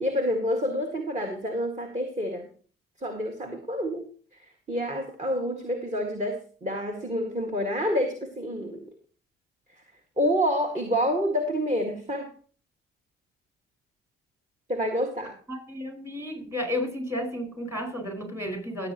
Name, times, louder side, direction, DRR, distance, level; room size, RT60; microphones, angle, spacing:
voice 1, 0.0-2.5 3.0-4.1 4.7-8.8 10.2-12.3 14.7-15.3, equal, 25° right, 3 dB, 2.0 m, -28 dB
voice 2, 15.5-18.9, left 1 dB, 10° right, 3 dB, 5.3 m, -32 dB
16.0 x 8.3 x 3.0 m, 0.41 s
hypercardioid pair, 55°, 29 cm